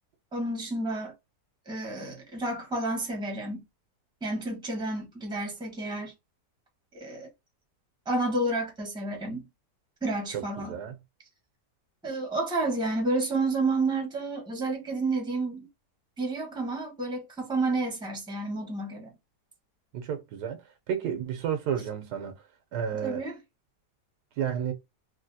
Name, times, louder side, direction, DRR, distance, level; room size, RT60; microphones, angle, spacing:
voice 1, 0.3-1.1 1.7-3.6 4.2-6.1 6.9-7.3 8.1-9.5 10.0-10.8 12.0-15.7 16.2-19.1 23.0-23.3, right 2 dB, 5° right, 0.9 m, -30 dB
voice 2, 19.9-22.4 22.7-23.2 24.4-24.7, right 8 dB, 75° right, 1.2 m, -31 dB
3.3 x 2.7 x 2.6 m
omnidirectional pair, 1.8 m